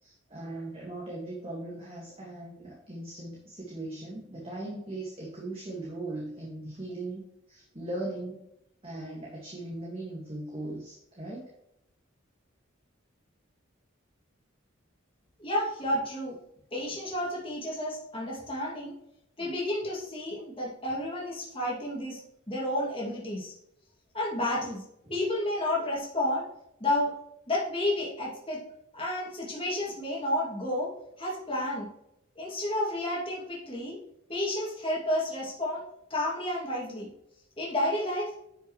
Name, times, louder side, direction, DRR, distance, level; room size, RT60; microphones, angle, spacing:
voice 1, 0.0-8.5 8.8-11.5 25.0-25.1, right 2 dB, 30° right, -4 dB, 1.9 m, -39 dB
voice 2, 15.4-16.3 16.7-18.9 19.4-22.2 22.5-23.5 24.1-24.8 25.1-26.4 26.8-27.1 27.5-28.6 28.9-30.9 31.2-31.9 32.4-34.0 34.3-35.8 36.1-37.1 37.6-38.3, left 1 dB, 30° left, -4 dB, 2.5 m, -31 dB
11.0 x 5.8 x 3.2 m, 0.80 s
head